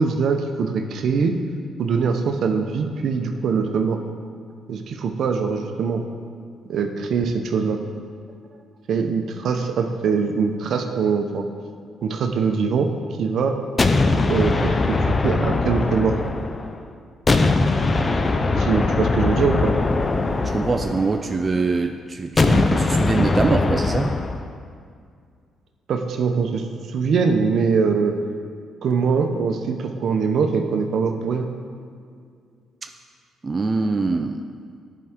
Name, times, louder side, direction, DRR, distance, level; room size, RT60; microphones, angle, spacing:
voice 1, 0.0-1.3 1.8-4.0 4.7-6.0 6.7-7.8 8.9-11.5 12.0-12.9 13.2-13.5 14.2-16.2 18.6-19.7 25.9-26.6 26.9-28.1 28.8-31.5, right 5 dB, 65° right, 5 dB, 0.7 m, -22 dB
sound 1, 13.8-16.8 17.3-21.5 22.4-24.5, left 3 dB, 30° left, 0.5 m, -21 dB
voice 2, 20.4-24.1 33.4-34.5, right 3 dB, 30° right, 5 dB, 0.4 m, -23 dB
11.0 x 4.6 x 3.6 m, 2.2 s
cardioid pair, 90°, 0 cm